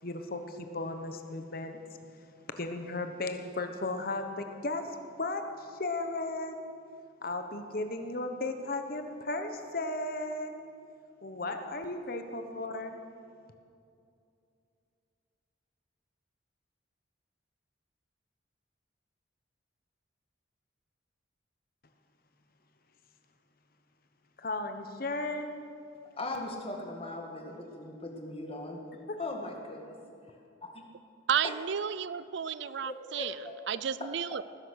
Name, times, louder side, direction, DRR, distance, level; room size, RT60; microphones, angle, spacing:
voice 1, 0.0-1.8 2.6-4.9 5.2-6.8 7.2-10.7 11.2-13.0 24.4-25.6, left 2 dB, 50° left, 7 dB, 1.1 m, -35 dB
voice 2, 26.2-28.8 29.2-30.0 30.6-30.8 31.4-31.5 32.9-33.6, left 2 dB, 30° left, 2 dB, 1.9 m, -39 dB
voice 3, 31.3-33.3 33.7-34.4, right 8 dB, 65° right, 16 dB, 0.4 m, -32 dB
19.5 x 10.5 x 6.5 m, 2.5 s
head